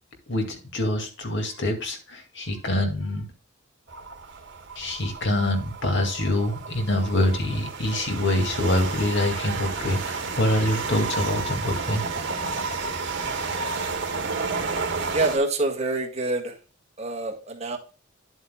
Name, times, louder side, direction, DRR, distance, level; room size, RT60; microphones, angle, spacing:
voice 1, 0.3-3.3 4.8-12.0, left 1 dB, 60° left, 4 dB, 2.2 m, -25 dB
sound 1, 3.9-15.4, right 4 dB, 60° right, 1.9 m, -31 dB
voice 2, 15.1-16.5 17.0-17.8, right 2 dB, 35° right, 2 dB, 1.6 m, -26 dB
10.5 x 7.9 x 2.2 m, 0.34 s
head